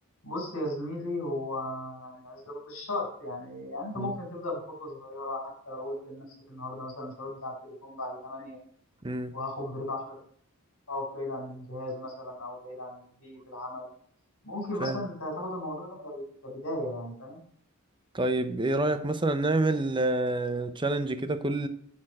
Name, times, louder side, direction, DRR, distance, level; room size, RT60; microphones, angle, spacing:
voice 1, 0.2-8.6 9.3-10.2 10.9-13.9 14.4-17.4, left 1 dB, 70° left, 4.1 m, -36 dB
voice 2, 9.0-9.3 14.8-15.0 18.1-21.7, right 2 dB, 20° right, 0.6 m, -27 dB
9.7 x 4.4 x 7.5 m
head